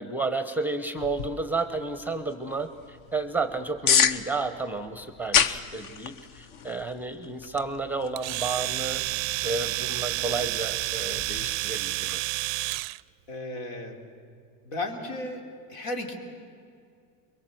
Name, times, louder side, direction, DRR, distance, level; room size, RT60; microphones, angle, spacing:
voice 1, 0.0-9.0 9.4-12.2, right 3 dB, 5° right, 9 dB, 0.8 m, -31 dB
sound 1, 1.0-11.5, left 7 dB, 45° left, 0.9 m, -31 dB
Domestic sounds home sounds, 8.2-13.0, right 25 dB, 55° right, 0.5 m, -30 dB
voice 2, 13.3-14.0 14.7-15.4 15.7-16.2, left 2 dB, 70° left, 3 dB, 3.6 m, -34 dB
23.0 x 22.5 x 7.8 m, 2.3 s
supercardioid pair, 120°, 47 cm